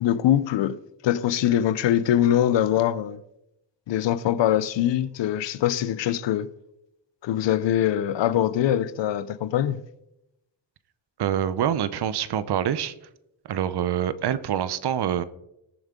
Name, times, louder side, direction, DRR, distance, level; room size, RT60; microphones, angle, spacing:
voice 1, 0.0-0.8 1.0-3.2 3.9-6.5 7.2-9.8, left 11 dB, 80° left, 0.7 m, -23 dB
voice 2, 11.2-12.9 13.5-15.2, right 10 dB, 65° right, 0.7 m, -25 dB
19.0 x 7.3 x 3.7 m
wide cardioid pair, 140°, 43 cm